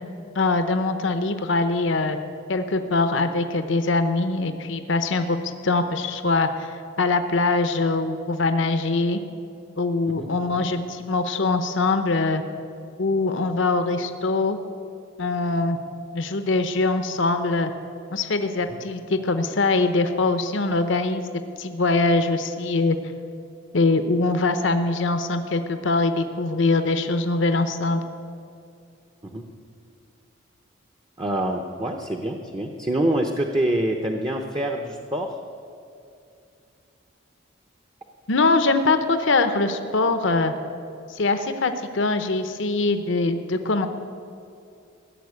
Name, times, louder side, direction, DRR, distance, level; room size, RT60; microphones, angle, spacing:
voice 1, 0.4-2.2 2.5-5.4 5.6-9.2 9.8-12.4 13.0-14.6 15.2-15.8 16.1-17.7 18.1-21.2 21.6-23.0 23.7-28.0 38.3-40.5 41.1-43.9, left 3 dB, 65° left, 9 dB, 0.8 m, -23 dB
voice 2, 31.2-35.4, right 1 dB, 20° right, 2 dB, 0.7 m, -26 dB
15.5 x 7.2 x 9.5 m, 2.5 s
head